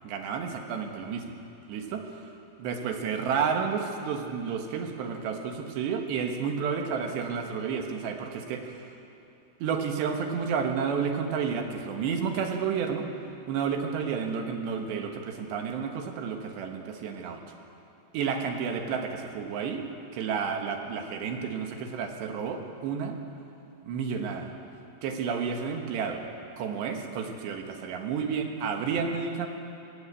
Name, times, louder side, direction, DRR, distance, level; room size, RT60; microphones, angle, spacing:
voice 1, 0.0-1.3 1.7-2.0 2.6-8.8 9.6-13.1 13.5-17.4 18.1-19.8 20.1-23.2 23.8-24.5 25.0-26.2 26.6-29.5, right 6 dB, 75° right, 4 dB, 3.6 m, -31 dB
20.0 x 16.0 x 8.5 m, 2.5 s
omnidirectional pair, 5.1 m